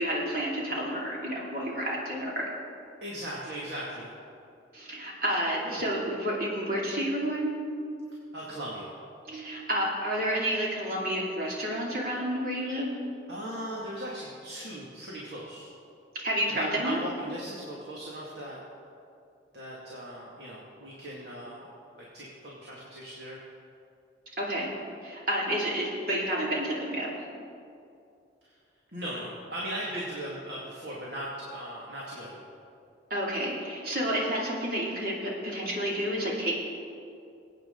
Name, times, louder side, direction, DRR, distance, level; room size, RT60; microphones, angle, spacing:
voice 1, 0.0-2.5 4.7-7.7 9.2-12.9 16.2-17.0 24.4-24.7 25.0-27.1 33.1-36.6, equal, 50° right, -4 dB, 2.8 m, -30 dB
voice 2, 3.0-4.1 5.6-5.8 8.3-8.9 13.3-15.7 16.5-18.6 19.5-21.7 21.9-23.4 28.4-28.5 28.9-32.4, right 1 dB, 70° right, -5 dB, 2.2 m, -38 dB
22.5 x 9.0 x 3.9 m, 2.5 s
head